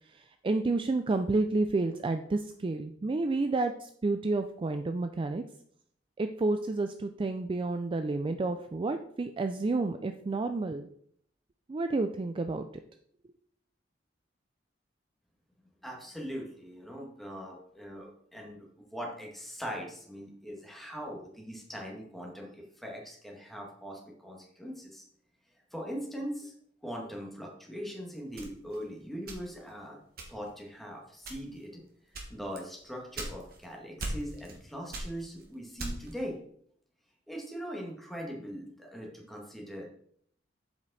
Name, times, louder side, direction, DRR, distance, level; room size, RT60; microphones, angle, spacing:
voice 1, 0.1-5.4 6.2-10.9 11.7-12.7, right 3 dB, 30° right, 8 dB, 0.3 m, -30 dB
voice 2, 15.8-25.0 25.7-26.5 26.8-30.0 30.3-31.8 32.3-36.4 37.3-39.9, equal, ahead, -2 dB, 1.7 m, -41 dB
sound 1, 28.4-29.7 30.2-30.6 31.2-31.7 32.1-33.7 34.0-34.6 34.9-36.2, right 2 dB, 55° right, 1.6 m, -39 dB
8.0 x 5.1 x 4.0 m, 0.65 s
head